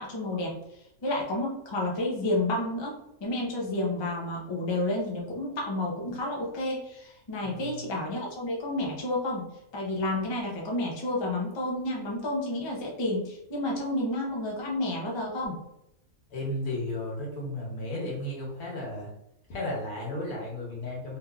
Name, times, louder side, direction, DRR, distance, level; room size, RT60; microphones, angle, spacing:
voice 1, 0.0-2.9 3.2-9.5 9.7-15.6, left 1 dB, 35° left, -2 dB, 0.4 m, -30 dB
voice 2, 7.4-7.9 16.3-19.1 19.5-21.2, left 1 dB, 85° left, -3 dB, 1.6 m, -34 dB
3.3 x 2.9 x 2.4 m, 0.81 s
omnidirectional pair, 1.5 m